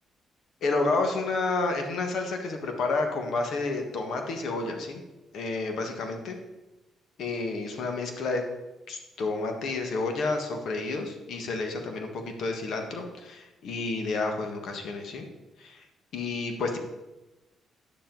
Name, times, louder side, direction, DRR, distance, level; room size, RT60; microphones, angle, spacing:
voice 1, 0.6-5.0 5.3-6.4 7.2-8.4 8.9-15.2 15.6-15.8 16.1-16.8, left 3 dB, 70° left, 4 dB, 1.5 m, -30 dB
9.8 x 7.1 x 4.0 m, 1.0 s
cardioid pair, 90°, 0 cm